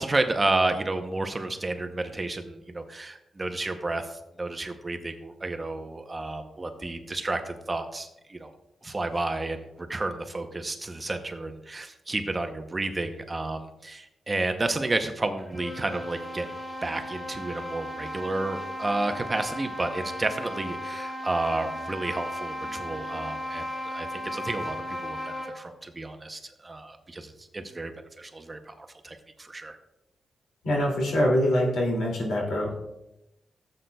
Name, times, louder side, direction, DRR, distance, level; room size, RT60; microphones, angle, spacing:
voice 1, 0.0-8.5 8.8-16.5 16.8-23.7 23.9-29.8, right 2 dB, 25° right, 7 dB, 0.7 m, -31 dB
sound 1, 15.4-25.7, left 1 dB, 20° left, 1.2 m, -36 dB
voice 2, 30.6-32.9, left 1 dB, 80° left, -1 dB, 2.5 m, -24 dB
15.0 x 7.8 x 2.3 m, 0.90 s
wide cardioid pair, 125°, 0 cm